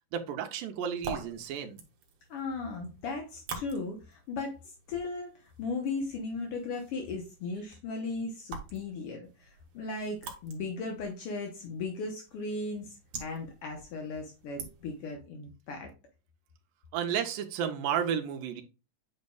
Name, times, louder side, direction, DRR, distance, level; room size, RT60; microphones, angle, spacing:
voice 1, 0.1-1.8 16.9-18.6, right 8 dB, 90° right, 2.3 m, -32 dB
sound 1, 0.7-15.1, right 5 dB, 60° right, 2.1 m, -47 dB
voice 2, 2.3-15.9, left 3 dB, 70° left, 1.4 m, -37 dB
8.7 x 5.3 x 2.3 m
omnidirectional pair, 3.9 m